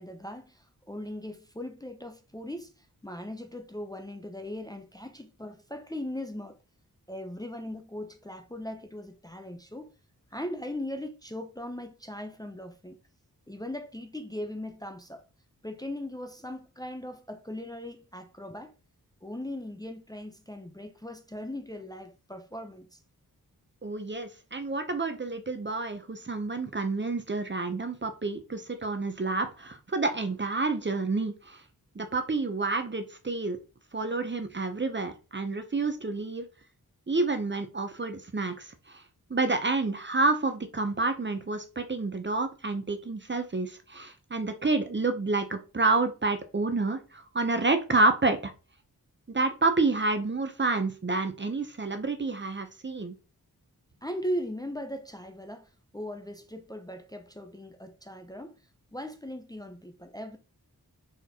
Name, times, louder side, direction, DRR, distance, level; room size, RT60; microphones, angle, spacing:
voice 1, 0.0-6.6 7.1-9.9 10.3-13.0 13.5-15.2 15.6-18.7 19.2-23.0 54.0-58.6 58.9-60.4, left 1 dB, 10° left, 0.6 m, -39 dB
voice 2, 23.8-31.6 32.0-33.6 33.9-36.4 37.1-39.0 39.3-48.5 49.3-53.1, right 3 dB, 30° right, 0.6 m, -29 dB
4.3 x 3.6 x 2.8 m
wide cardioid pair, 55°, 37 cm